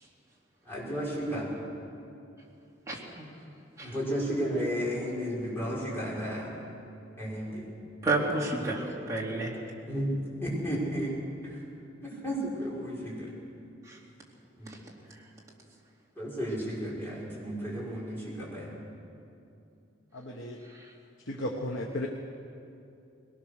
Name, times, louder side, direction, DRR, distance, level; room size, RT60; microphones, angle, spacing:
voice 1, 0.7-1.5 3.8-6.5 7.2-7.6 9.9-10.1 10.4-11.1 12.0-13.1 14.6-14.7 16.2-18.7, equal, 10° left, -7 dB, 5.7 m, -33 dB
voice 2, 2.9-3.2 3.8-3.9 8.0-9.5 13.9-14.0 14.7-14.8 20.7-20.9, right 2 dB, 15° right, -4 dB, 3.1 m, -31 dB
voice 3, 20.1-20.6 21.3-22.1, left 1 dB, 80° left, 0 dB, 1.3 m, -34 dB
21.0 x 18.5 x 6.6 m, 2.7 s
head